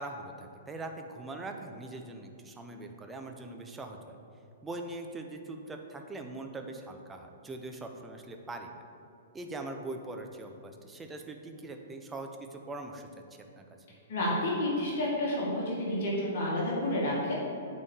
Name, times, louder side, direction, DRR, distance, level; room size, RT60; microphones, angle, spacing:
voice 1, 0.0-4.2 4.6-8.8 9.3-13.6, right 2 dB, 10° right, 3 dB, 0.8 m, -42 dB
voice 2, 14.1-17.4, left 1 dB, 50° left, -5 dB, 2.1 m, -30 dB
8.7 x 4.3 x 6.5 m, 2.7 s
figure-of-eight pair, 110°, 0 cm